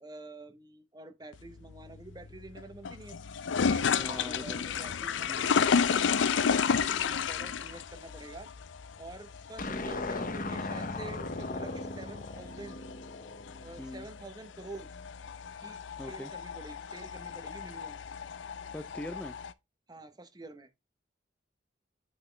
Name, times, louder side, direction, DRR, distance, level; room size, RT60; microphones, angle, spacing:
voice 1, 0.0-3.2 3.6-5.6 5.9-8.5 9.0-12.8 13.6-14.9 15.6-18.0 19.9-20.7, right 2 dB, 20° right, 0.8 m, -47 dB
sound 1, 1.3-19.5, left 6 dB, 75° left, 0.4 m, -32 dB
voice 2, 4.0-4.7 5.3-5.5 9.7-10.4 13.8-14.1 16.0-16.3 18.7-19.4, left 1 dB, 5° left, 0.4 m, -42 dB
sound 2, 9.6-14.0, left 2 dB, 45° left, 0.7 m, -37 dB
8.8 x 4.2 x 3.2 m
head